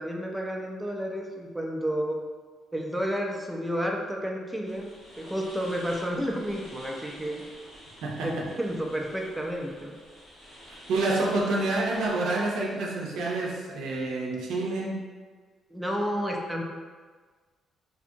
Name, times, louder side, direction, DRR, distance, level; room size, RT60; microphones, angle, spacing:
voice 1, 0.0-2.2 2.7-4.9 5.2-7.4 8.2-10.0 15.7-16.6, equal, 5° right, 0 dB, 0.4 m, -31 dB
sound 1, 4.6-12.1, equal, 70° left, 1.2 m, -49 dB
voice 2, 8.0-8.5 10.7-15.1, right 2 dB, 80° right, -2 dB, 0.5 m, -28 dB
2.6 x 2.4 x 2.6 m, 1.5 s
cardioid pair, 90°, 0 cm